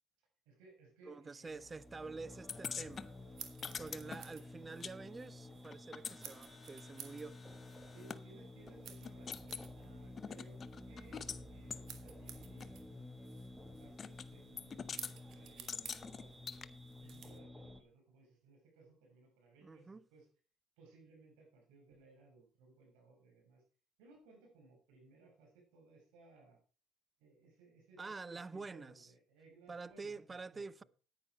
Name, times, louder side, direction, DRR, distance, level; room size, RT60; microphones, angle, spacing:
voice 1, 0.4-1.8 3.6-3.7 7.9-10.6 10.9-15.0 15.3-16.5 17.0-20.3 20.8-23.6 24.0-26.6 27.2-30.9, right 3 dB, 85° right, 6.4 m, -62 dB
voice 2, 1.0-3.1 3.8-7.4 19.6-20.0 28.0-29.1 29.7-30.8, right 4 dB, 25° right, 0.5 m, -47 dB
sound 1, 1.5-17.8, left 1 dB, ahead, 1.6 m, -52 dB
sound 2, 2.5-5.0 5.2-8.2 8.7-8.8 9.0-9.7 10.2-11.4 11.7-11.8 12.6-12.7 14.0-14.3 14.6-15.1 15.7-16.7, left 6 dB, 40° left, 0.8 m, -45 dB
sound 3, 2.8-17.4, right 9 dB, 65° right, 1.8 m, -56 dB
9.9 x 9.8 x 4.7 m
supercardioid pair, 90°, 0 cm